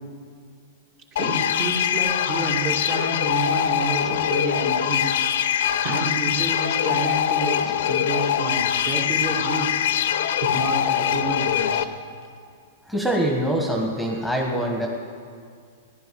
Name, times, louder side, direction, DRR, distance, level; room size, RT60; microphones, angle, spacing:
sound 1, 1.2-11.8, left 9 dB, 70° left, 0.7 m, -23 dB
voice 1, 1.2-9.7 10.4-11.9, right 2 dB, 35° right, 2 dB, 2.1 m, -30 dB
voice 2, 12.9-14.9, right 1 dB, ahead, 0 dB, 1.4 m, -24 dB
14.5 x 11.0 x 7.5 m, 2.2 s
hypercardioid pair, 145°, 0 cm